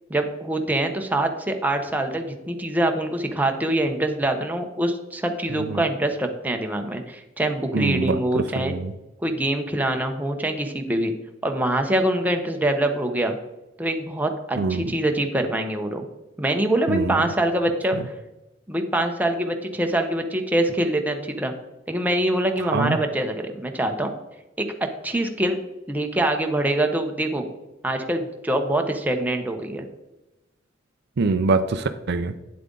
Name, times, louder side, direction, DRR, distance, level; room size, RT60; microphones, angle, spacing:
voice 1, 0.1-8.7 9.2-11.1 11.4-13.4 13.8-16.1 16.4-18.0 18.7-21.5 21.9-24.1 24.6-24.7 25.0-25.6 25.9-27.5 27.8-29.8, right 1 dB, 10° right, 4 dB, 0.9 m, -24 dB
voice 2, 7.7-8.9 14.6-14.9 16.9-17.2 22.7-23.0 31.2-32.3, right 3 dB, 60° right, 10 dB, 0.5 m, -24 dB
9.5 x 7.6 x 3.8 m, 0.99 s
head